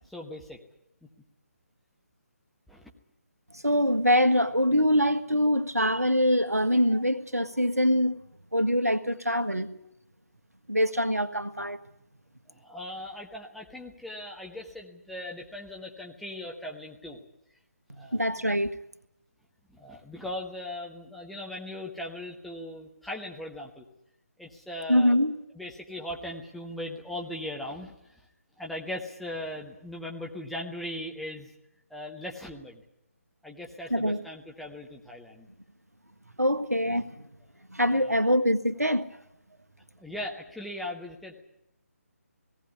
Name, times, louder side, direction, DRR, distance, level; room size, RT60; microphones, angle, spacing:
voice 1, 0.1-0.6 2.7-2.8 6.5-6.6 12.5-17.2 17.9-18.3 19.7-23.8 24.4-25.2 25.5-28.2 28.6-31.5 31.9-32.8 33.4-35.5 37.9-38.2 40.0-41.4, left 1 dB, ahead, 1.3 m, -39 dB
voice 2, 3.6-8.2 8.5-9.7 10.7-11.8 17.9-18.7 24.9-25.3 33.9-34.2 36.4-37.2 37.7-39.1, equal, 85° right, 1.5 m, -24 dB
18.5 x 17.0 x 9.7 m
figure-of-eight pair, 150°, 8 cm